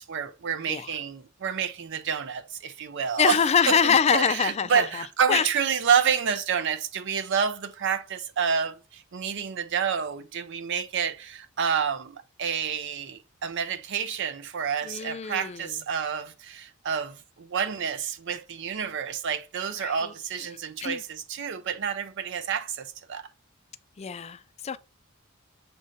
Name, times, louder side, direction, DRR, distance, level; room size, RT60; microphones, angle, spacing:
voice 1, 0.0-3.4 3.7-23.3, right 7 dB, 60° right, 0.5 m, -29 dB
voice 2, 3.2-5.0 5.3-5.5 14.8-15.7 19.8-20.1 20.8-21.0 24.0-24.8, left 6 dB, 30° left, 0.4 m, -24 dB
7.4 x 2.7 x 5.0 m
head